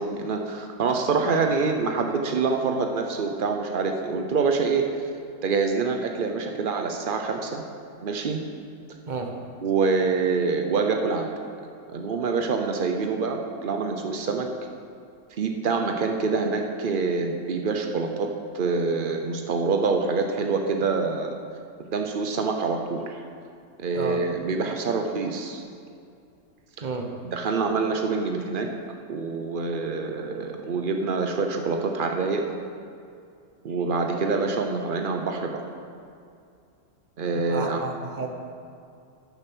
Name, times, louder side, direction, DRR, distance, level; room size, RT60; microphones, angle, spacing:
voice 1, 0.0-4.9 5.4-7.6 8.0-8.4 9.6-11.3 11.9-14.5 15.4-21.4 21.8-23.2 23.8-25.6 26.8-26.9 27.2-28.7 29.1-32.4 33.6-35.6 37.2-37.8, right 4 dB, 85° right, 4 dB, 0.4 m, -26 dB
voice 2, 23.9-24.3 26.8-27.1 37.3-38.3, right 4 dB, 35° right, 3 dB, 0.9 m, -32 dB
13.0 x 6.6 x 6.2 m, 2.4 s
omnidirectional pair, 2.0 m